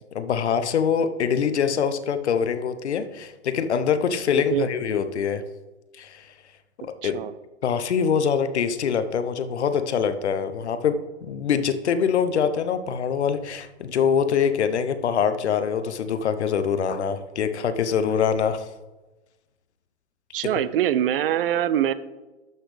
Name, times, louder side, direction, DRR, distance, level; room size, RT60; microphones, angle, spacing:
voice 1, 0.1-5.4 6.0-6.3 6.8-7.2 7.6-18.7, left 7 dB, 70° left, 11 dB, 0.9 m, -24 dB
voice 2, 7.0-7.3 20.3-21.9, right 11 dB, 55° right, 15 dB, 0.6 m, -23 dB
12.0 x 5.9 x 3.3 m, 1.1 s
hypercardioid pair, 115°, 35 cm